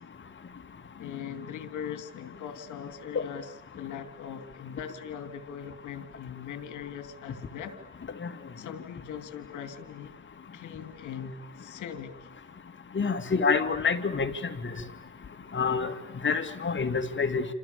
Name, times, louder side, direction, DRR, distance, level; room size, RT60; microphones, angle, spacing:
voice 1, 1.0-3.5 3.8-7.7 8.6-10.1 10.5-12.1 14.8-14.9, left 8 dB, 80° left, 3.2 m, -40 dB
voice 2, 12.9-14.3 14.6-14.7 15.5-15.9 16.2-17.5, left 5 dB, 40° left, 2.9 m, -27 dB
29.0 x 27.0 x 7.0 m
cardioid pair, 90°, 30 cm